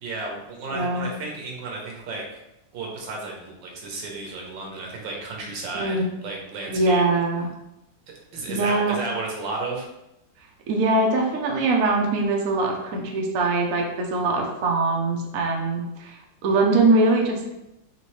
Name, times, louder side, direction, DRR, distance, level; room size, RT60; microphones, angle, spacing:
voice 1, 0.0-2.3 2.7-6.0 6.2-7.0 8.1-9.8, right 3 dB, 85° right, 0 dB, 1.6 m, -33 dB
voice 2, 0.7-1.1 5.7-6.2 6.7-7.5 8.5-9.0 10.7-17.5, right 2 dB, 60° right, 0 dB, 0.9 m, -22 dB
4.3 x 3.2 x 3.1 m, 0.89 s
omnidirectional pair, 2.0 m